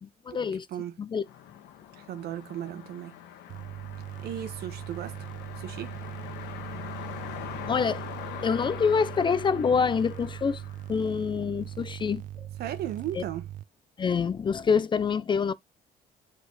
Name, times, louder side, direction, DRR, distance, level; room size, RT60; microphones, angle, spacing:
voice 1, 0.0-0.7 1.0-1.2 7.7-8.0 8.4-10.6 10.9-12.2 13.1-13.2 14.0-15.5, left 6 dB, 30° left, 0.4 m, -26 dB
sound 1, 1.2-11.5, left 10 dB, 90° left, 1.4 m, -42 dB
voice 2, 2.0-3.1 4.2-5.1 5.6-5.9 12.6-13.4, right 11 dB, 70° right, 1.3 m, -35 dB
sound 2, 3.5-13.6, right 12 dB, 50° right, 0.4 m, -40 dB
7.8 x 4.0 x 3.2 m
cardioid pair, 110°, 17 cm